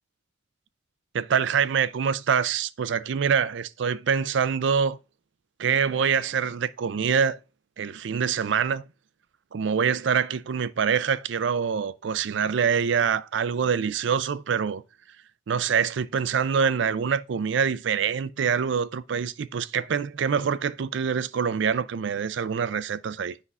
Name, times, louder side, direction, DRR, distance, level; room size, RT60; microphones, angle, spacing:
voice 1, 1.1-5.0 5.6-7.4 7.8-8.8 9.5-14.8 15.5-23.3, right 6 dB, 65° right, 0.4 m, -25 dB
8.2 x 5.4 x 2.4 m
head